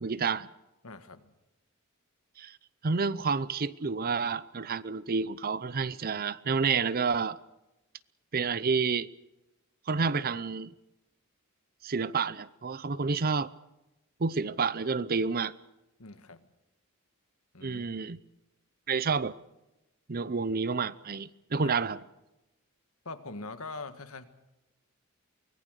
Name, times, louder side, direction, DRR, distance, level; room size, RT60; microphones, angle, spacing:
voice 1, 0.0-0.5 2.4-2.6 2.8-7.4 8.3-9.1 9.9-10.7 11.8-13.5 14.2-15.5 17.6-18.2 18.9-19.3 20.1-22.0, right 5 dB, 45° right, 0.6 m, -29 dB
voice 2, 0.8-1.3 16.0-16.4 17.5-17.8 21.6-21.7 23.1-24.3, left 3 dB, 70° left, 1.7 m, -42 dB
24.0 x 19.0 x 6.6 m
head